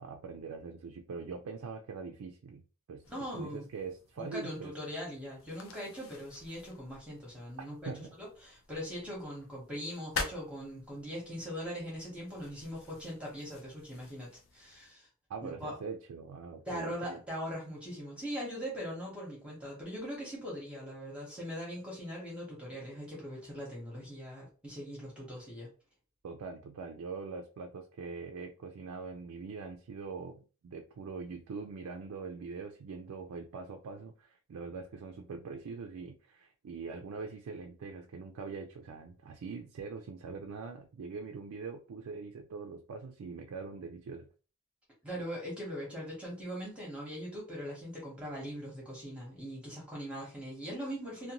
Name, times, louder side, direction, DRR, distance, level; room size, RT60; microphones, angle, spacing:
voice 1, 0.0-2.6 2.9-3.0 3.3-4.7 7.6-8.1 15.3-17.2 26.2-44.3, right 4 dB, 85° right, 3 dB, 0.4 m, -43 dB
sound 1, 3.0-14.9, left 4 dB, 60° left, 0.5 m, -47 dB
voice 2, 3.1-3.6 4.2-7.9 8.2-15.1 15.4-15.8 16.7-25.7 45.0-51.3, equal, 5° right, -4 dB, 0.8 m, -41 dB
2.5 x 2.2 x 2.8 m, 0.36 s
head